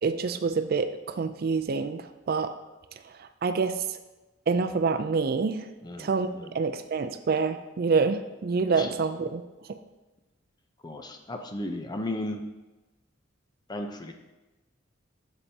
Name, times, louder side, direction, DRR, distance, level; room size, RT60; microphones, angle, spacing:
voice 1, 0.0-2.5 3.0-4.0 4.5-5.7 6.0-6.3 6.5-9.4, right 4 dB, 50° right, 9 dB, 0.4 m, -27 dB
voice 2, 5.8-6.6 8.7-8.9 10.8-12.4 13.7-14.1, left 1 dB, 20° left, 5 dB, 0.6 m, -35 dB
9.6 x 7.2 x 2.8 m, 1.1 s
head